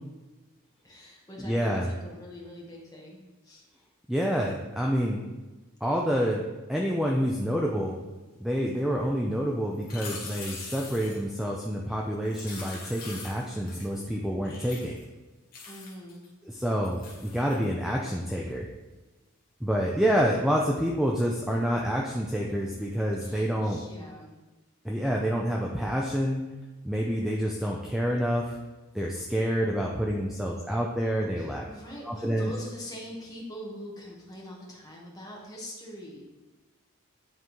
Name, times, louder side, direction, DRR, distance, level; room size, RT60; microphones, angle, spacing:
voice 1, 0.8-3.2 3.4-3.6 15.7-16.2 23.2-24.3 31.4-36.3, equal, 15° left, -3 dB, 1.2 m, -43 dB
voice 2, 1.4-1.9 4.1-5.2 5.8-6.4 6.7-8.0 8.4-15.0 16.5-18.7 19.6-23.8 24.8-26.4 26.8-28.6 28.9-31.6 32.0-32.5, equal, ahead, -2 dB, 0.3 m, -28 dB
sound 1, 9.7-11.3 12.2-14.1 14.4-15.0 15.5-16.3 16.8-17.6 22.8-22.9, left 4 dB, 40° left, 1.2 m, -43 dB
9.1 x 3.6 x 3.1 m, 1.2 s
head